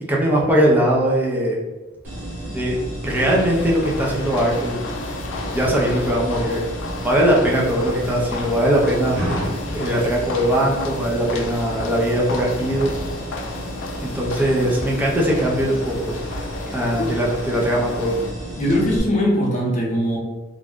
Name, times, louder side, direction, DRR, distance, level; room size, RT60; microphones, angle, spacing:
voice 1, 0.1-1.6 2.5-2.8 3.0-4.8 5.5-6.6 7.0-9.2 9.7-12.9 14.0-16.2 16.7-18.2, right 1 dB, 10° right, -3 dB, 0.5 m, -20 dB
sound 1, 2.0-19.0, right 1 dB, 80° right, 1.1 m, -31 dB
sound 2, 3.1-18.3, left 4 dB, 70° left, 0.3 m, -34 dB
voice 2, 16.7-17.1 18.6-20.2, equal, 40° left, -3 dB, 0.7 m, -21 dB
2.4 x 2.2 x 3.5 m, 1.2 s
head